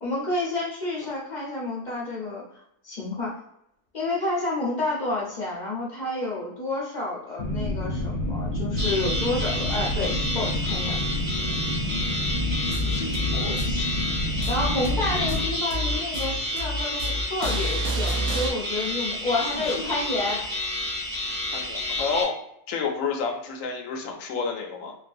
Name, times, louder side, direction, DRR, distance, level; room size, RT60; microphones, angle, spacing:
voice 1, 0.0-2.4 2.8-3.4 3.9-11.1 13.5-13.6 14.4-20.5, left 2 dB, 40° left, -5 dB, 0.7 m, -29 dB
sound 1, 7.4-15.4, left 1 dB, 85° left, 1.2 m, -29 dB
sound 2, 8.8-22.2, left 1 dB, 15° right, 1.3 m, -30 dB
sound 3, 12.3-18.5, equal, 70° right, 1.0 m, -29 dB
voice 2, 13.3-14.0 21.5-22.4 22.7-25.0, left 5 dB, 65° left, 2 dB, 0.9 m, -30 dB
3.2 x 2.3 x 2.5 m, 0.75 s
omnidirectional pair, 1.6 m